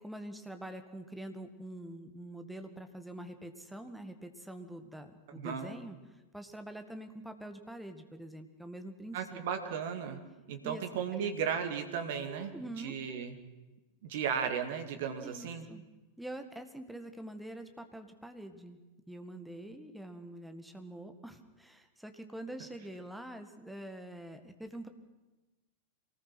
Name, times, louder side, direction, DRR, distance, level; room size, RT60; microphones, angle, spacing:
voice 1, 0.0-9.4 10.6-10.8 11.1-11.5 12.3-13.0 14.3-14.5 15.2-15.8 16.2-18.8 19.1-24.9, right 1 dB, ahead, 6 dB, 1.9 m, -45 dB
voice 2, 5.4-5.7 9.1-13.4 14.0-15.6, right 7 dB, 55° right, 6 dB, 2.4 m, -35 dB
24.0 x 19.0 x 6.1 m, 1.1 s
figure-of-eight pair, 90°, 0 cm